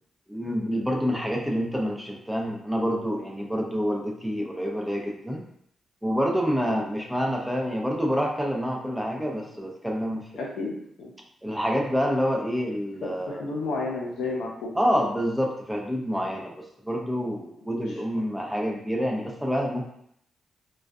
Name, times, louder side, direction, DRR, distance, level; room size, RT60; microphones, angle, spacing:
voice 1, 0.3-5.4 6.0-10.2 11.4-13.4 14.7-19.9, equal, 5° right, 0 dB, 0.5 m, -27 dB
voice 2, 10.3-11.1 13.0-14.7 17.7-18.2, left 3 dB, 85° left, -2 dB, 0.5 m, -33 dB
2.4 x 2.2 x 2.3 m, 0.71 s
cardioid pair, 65°, 0 cm